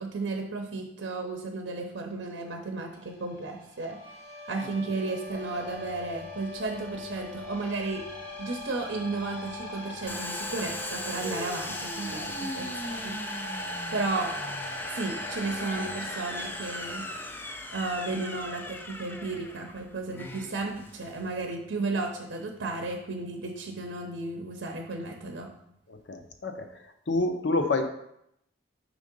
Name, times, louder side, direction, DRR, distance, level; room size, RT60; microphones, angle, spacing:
voice 1, 0.0-4.0 4.5-8.0 8.4-13.2 13.9-14.3 14.9-17.1 17.7-25.5, right 3 dB, 70° right, 3 dB, 0.7 m, -33 dB
sound 1, 2.9-17.5, equal, 90° left, 1.9 m, -43 dB
sound 2, 3.9-10.0, left 5 dB, 30° right, 0.7 m, -43 dB
Domestic sounds home sounds, 10.1-21.4, left 1 dB, 10° left, 0.3 m, -38 dB
voice 2, 25.9-26.8 27.1-27.8, left 2 dB, 65° left, 6 dB, 0.6 m, -28 dB
5.0 x 3.6 x 5.2 m, 0.78 s
head